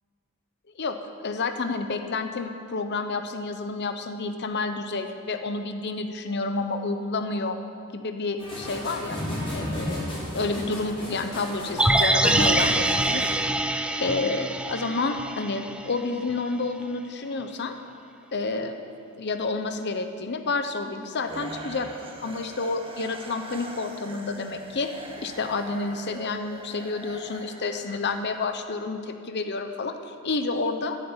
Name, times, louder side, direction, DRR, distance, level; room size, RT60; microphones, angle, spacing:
voice 1, 1.2-7.6 7.9-9.2 9.5-13.3 14.0-17.8 18.3-18.7 19.2-21.9 22.2-24.9 25.2-31.0, left 3 dB, 50° left, 7 dB, 0.8 m, -29 dB
sound 1, 8.4-13.4, equal, 25° left, 4.0 m, -33 dB
sound 2, 11.8-16.0 16.3-16.4, right 1 dB, 5° right, 0.6 m, -24 dB
sound 3, 21.2-28.5, right 2 dB, 25° right, 1.5 m, -42 dB
14.5 x 8.2 x 8.9 m, 2.3 s
head